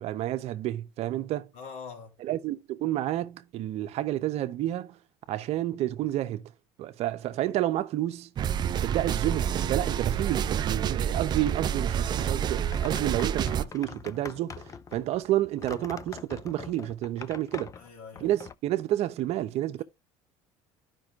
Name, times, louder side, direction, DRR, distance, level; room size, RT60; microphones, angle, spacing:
voice 1, 0.0-1.5 2.2-5.0 5.3-6.5 6.8-8.3 8.6-17.7 18.2-19.8, right 14 dB, 60° right, 0.8 m, -30 dB
voice 2, 1.5-2.2 17.7-18.3, left 5 dB, 65° left, 2.9 m, -43 dB
sound 1, 8.4-13.6, right 8 dB, 35° right, 0.4 m, -28 dB
sound 2, 12.2-18.5, left 6 dB, 25° left, 0.4 m, -43 dB
12.5 x 5.4 x 2.4 m
supercardioid pair, 110°, 12 cm